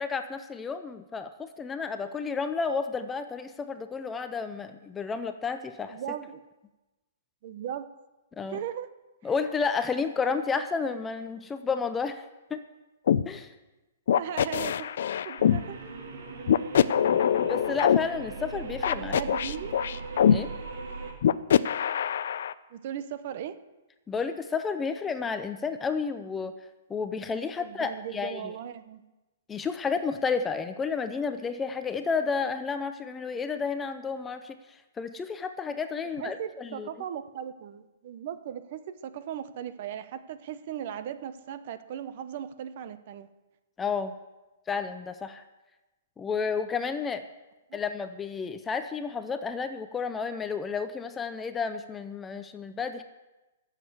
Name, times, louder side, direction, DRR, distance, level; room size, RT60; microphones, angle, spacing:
voice 1, 0.0-6.0 8.4-8.6 9.2-12.2 12.5-12.6 13.3-13.5 17.5-19.2 20.3-20.5 24.1-26.5 26.9-28.5 29.5-34.6 35.0-36.9 43.8-44.1 44.7-45.4 46.2-47.2 47.7-53.0, left 5 dB, 10° left, 9 dB, 0.5 m, -31 dB
voice 2, 5.9-6.4 7.4-7.9 8.5-8.9 14.1-14.9 15.2-15.8 19.0-19.8 22.7-23.6 27.6-29.0 36.2-43.3 47.7-47.8, right 9 dB, 40° right, 12 dB, 0.8 m, -37 dB
sound 1, 13.1-13.2 14.1-15.6 16.5-18.0 18.8-20.4 21.2-22.5, left 9 dB, 60° left, 0.5 m, -23 dB
sound 2, 15.4-21.1, right 3 dB, 75° right, 3.5 m, -39 dB
14.0 x 7.5 x 8.0 m, 1.1 s
hypercardioid pair, 170°, 0 cm